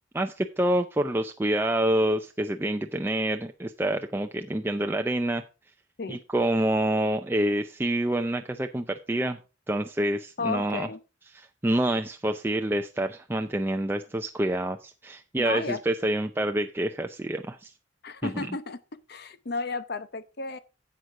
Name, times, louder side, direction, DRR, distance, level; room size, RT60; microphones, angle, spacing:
voice 1, 0.1-5.4 6.1-9.4 9.7-10.9 11.3-17.7 18.2-18.5, right 1 dB, 10° right, 0.4 m, -27 dB
voice 2, 10.4-11.0 15.4-15.8 18.0-18.8 19.1-20.6, left 3 dB, 55° left, 0.8 m, -33 dB
11.0 x 7.9 x 3.7 m
head